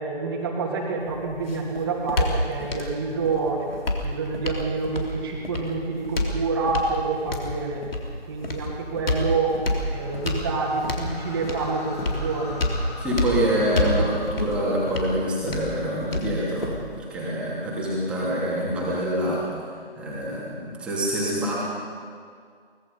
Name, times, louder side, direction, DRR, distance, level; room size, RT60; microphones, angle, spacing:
voice 1, 0.0-7.9 8.2-9.6 9.9-12.7 13.2-14.1, right 4 dB, 20° right, -1 dB, 2.5 m, -28 dB
sound 1, 1.0-17.0, left 2 dB, 65° left, 3.7 m, -29 dB
sound 2, 9.4-15.7, left 1 dB, 25° left, 6.3 m, -40 dB
voice 2, 13.0-19.4 20.0-21.5, right 1 dB, 5° right, -7 dB, 2.8 m, -26 dB
23.5 x 21.0 x 5.4 m, 2.1 s
figure-of-eight pair, 160°, 32 cm